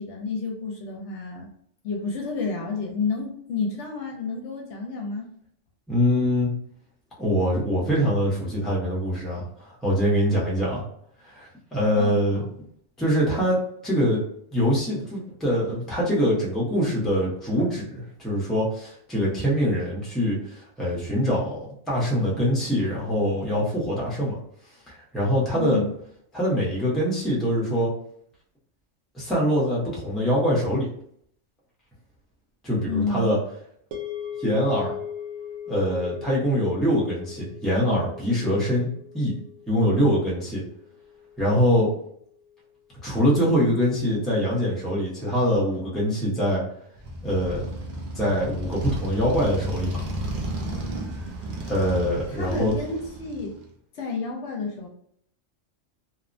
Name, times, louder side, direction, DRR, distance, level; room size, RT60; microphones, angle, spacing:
voice 1, 0.0-1.5 1.8-5.3 12.0-12.5 25.6-25.9 32.8-33.3 52.3-53.6 53.9-54.9, left 4 dB, 70° left, 1 dB, 0.9 m, -30 dB
voice 2, 5.9-6.5 7.2-10.8 11.2-12.4 13.0-14.2 14.5-21.6 21.9-24.4 24.9-25.8 26.3-27.9 29.1-30.9 32.6-33.4 34.4-34.9 35.7-38.9 39.1-39.3 39.7-40.6 41.4-41.9 43.0-46.6 47.2-47.7 48.2-50.1 51.6-52.7, equal, ahead, -5 dB, 0.6 m, -24 dB
sound 1, 33.9-42.2, left 8 dB, 85° right, 1.0 m, -39 dB
Motorcycle, 47.0-53.7, right 1 dB, 55° right, 0.6 m, -33 dB
2.7 x 2.1 x 2.5 m, 0.67 s
omnidirectional pair, 1.3 m